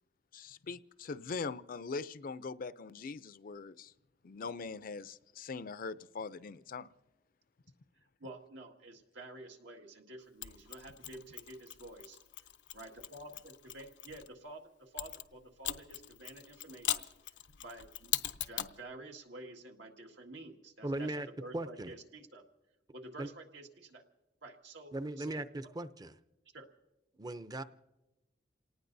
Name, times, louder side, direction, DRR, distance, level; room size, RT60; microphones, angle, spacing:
voice 1, 0.3-3.9 4.2-6.9, left 4 dB, 50° left, 0.5 m, -42 dB
voice 2, 7.9-12.2 12.7-17.1 17.6-21.1 21.4-22.4 22.9-24.0 24.4-25.4 26.5-26.7, right 2 dB, 80° right, 1.9 m, -50 dB
Mechanisms, 10.4-14.3 15.0-18.8, left 12 dB, 90° left, 0.6 m, -40 dB
voice 3, 20.8-21.3 21.5-21.9 23.2-23.3 24.9-26.1 27.2-27.6, right 1 dB, 20° right, 0.6 m, -38 dB
28.5 x 18.5 x 2.7 m
head